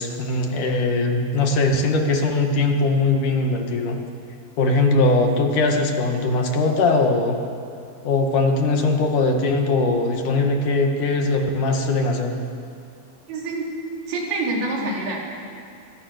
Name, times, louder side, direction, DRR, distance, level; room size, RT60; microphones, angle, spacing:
voice 1, 0.0-4.0 4.6-7.4 8.0-12.3, left 3 dB, 60° left, 3 dB, 3.1 m, -20 dB
voice 2, 13.3-13.7 14.1-15.2, right 2 dB, 85° right, -2 dB, 5.9 m, -26 dB
25.0 x 22.5 x 6.6 m, 2.5 s
omnidirectional pair, 4.3 m